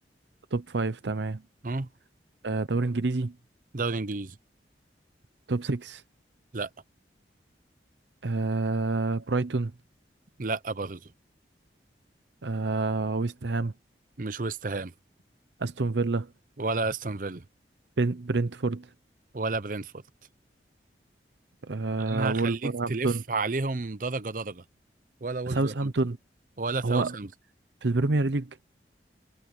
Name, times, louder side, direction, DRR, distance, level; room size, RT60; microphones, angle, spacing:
voice 1, 0.5-1.4 2.4-3.3 5.5-6.0 8.2-9.7 12.4-13.7 15.6-16.3 18.0-18.9 21.6-23.2 25.5-26.2 26.8-27.1 27.8-28.6, right 3 dB, 80° right, 0.8 m, -27 dB
voice 2, 3.7-4.4 6.5-6.7 10.4-11.1 14.2-14.9 16.6-17.4 19.3-20.0 22.1-24.6 25.2-25.7 26.6-27.3, right 3 dB, 50° right, 0.8 m, -31 dB
head